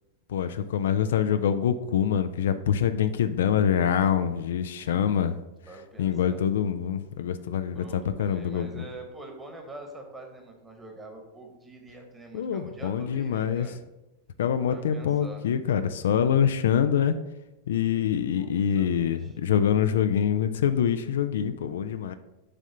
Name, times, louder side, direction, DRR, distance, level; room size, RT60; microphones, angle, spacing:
voice 1, 0.3-5.4 6.0-8.8 12.3-13.7 14.4-17.2 17.7-22.1, left 8 dB, 60° left, 10 dB, 0.3 m, -25 dB
voice 2, 4.7-5.2 5.7-6.4 7.7-13.8 14.7-15.4 18.4-19.3, right 2 dB, 15° right, 3 dB, 1.3 m, -45 dB
6.7 x 3.6 x 5.4 m, 0.98 s
figure-of-eight pair, 90°, 0 cm